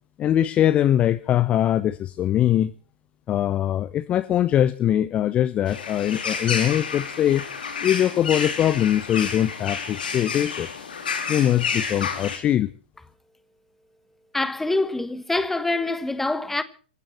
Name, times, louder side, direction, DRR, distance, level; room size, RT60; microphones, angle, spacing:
voice 1, 0.2-2.7 3.3-7.5 7.8-10.7 11.3-12.7, left 11 dB, 20° left, 0.6 m, -22 dB
sound 1, 5.7-12.4, left 5 dB, 60° left, 4.2 m, -30 dB
voice 2, 14.3-16.6, left 2 dB, 5° left, 1.2 m, -25 dB
27.0 x 15.0 x 3.2 m
figure-of-eight pair, 115°, 6 cm